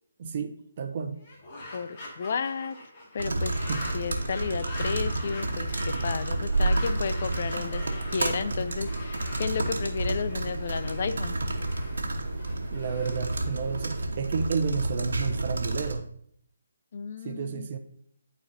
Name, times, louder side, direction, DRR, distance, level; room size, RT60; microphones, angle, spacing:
voice 1, 0.2-1.2 3.7-3.9 12.7-16.1 17.2-17.8, right 6 dB, 40° right, 7 dB, 0.7 m, -31 dB
sound 1, 1.2-14.3, left 1 dB, 35° left, 1.9 m, -43 dB
voice 2, 1.7-2.8 3.1-7.8 8.1-11.4 16.9-17.7, left 6 dB, 50° left, 13 dB, 0.3 m, -33 dB
sound 2, 3.2-16.0, right 2 dB, 75° right, 1.1 m, -30 dB
11.5 x 4.1 x 2.7 m, 0.66 s
figure-of-eight pair, 150°, 0 cm